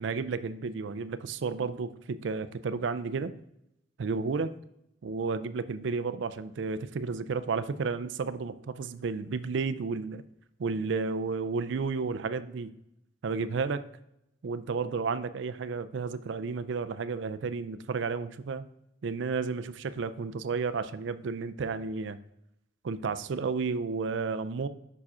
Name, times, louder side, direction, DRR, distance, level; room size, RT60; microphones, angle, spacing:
voice 1, 0.0-3.3 4.0-4.5 5.0-10.2 10.6-12.7 13.2-13.9 14.4-18.6 19.0-22.2 22.8-24.7, right 4 dB, 65° right, 12 dB, 0.4 m, -32 dB
5.7 x 4.7 x 4.9 m, 0.82 s
head